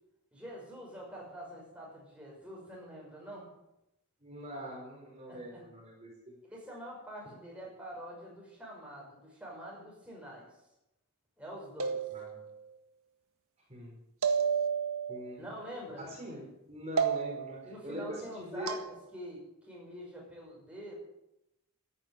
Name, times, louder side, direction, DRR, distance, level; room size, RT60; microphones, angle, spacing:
voice 1, 0.3-3.5 5.3-5.6 6.4-10.6 11.4-12.0 15.4-16.0 17.6-20.9, equal, 5° right, -3 dB, 5.8 m, -46 dB
voice 2, 4.2-6.1 12.1-12.4 13.7-14.0 15.1-15.5 16.0-18.8, equal, 30° right, -2 dB, 4.8 m, -43 dB
sound 1, 11.8-12.6 14.2-15.2 17.0-17.6 18.7-18.9, right 6 dB, 75° right, 1.8 m, -31 dB
14.5 x 11.0 x 9.1 m, 0.89 s
head